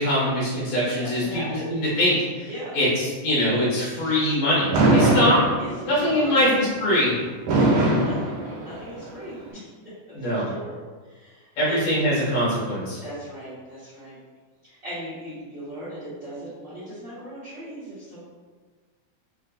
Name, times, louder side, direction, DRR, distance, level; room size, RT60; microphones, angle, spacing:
voice 1, 0.0-1.4 1.7-5.4 5.8-7.1 10.1-10.4 11.6-13.0, equal, 70° left, -7 dB, 2.8 m, -23 dB
voice 2, 1.0-1.7 2.5-2.8 4.0-4.2 5.6-6.5 7.5-9.7 10.3-10.8 11.1-11.8 13.0-14.2 14.6-18.2, right 1 dB, 55° right, -12 dB, 1.2 m, -38 dB
Fireworks, 4.7-6.0 7.5-9.0, right 1 dB, 75° right, 2.5 m, -20 dB
6.4 x 2.4 x 2.3 m, 1.4 s
omnidirectional pair, 3.7 m